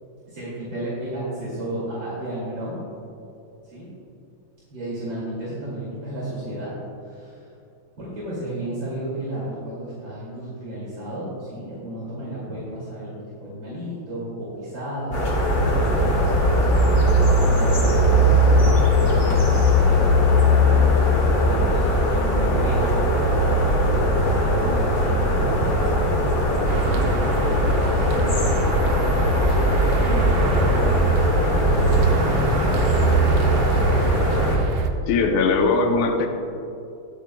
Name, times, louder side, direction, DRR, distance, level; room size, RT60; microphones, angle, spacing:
voice 1, 0.3-2.8 3.6-3.9 4.7-6.7 7.0-7.4 8.0-16.5 17.4-19.6 19.9-31.9, right 1 dB, 65° right, -9 dB, 3.2 m, -33 dB
sound 1, 15.1-34.6, left 1 dB, 45° left, 2.2 m, -19 dB
sound 2, 26.7-34.9, right 5 dB, 80° right, 1.5 m, -24 dB
voice 2, 35.1-36.3, left 4 dB, 75° left, 4 dB, 1.5 m, -20 dB
22.0 x 7.9 x 2.2 m, 2.7 s
omnidirectional pair, 2.2 m